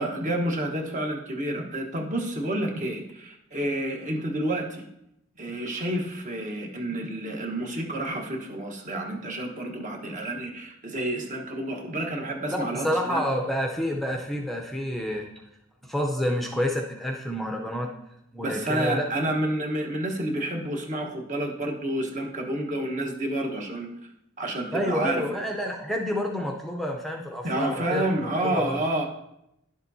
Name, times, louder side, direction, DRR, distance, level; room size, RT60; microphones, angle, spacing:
voice 1, 0.0-4.9 5.4-13.2 18.4-23.9 24.4-25.4 27.4-29.1, right 1 dB, 40° right, 2 dB, 1.2 m, -29 dB
voice 2, 12.5-15.3 15.8-17.9 18.3-19.0 24.7-28.8, equal, ahead, 0 dB, 0.6 m, -29 dB
11.0 x 7.2 x 2.7 m, 0.82 s
head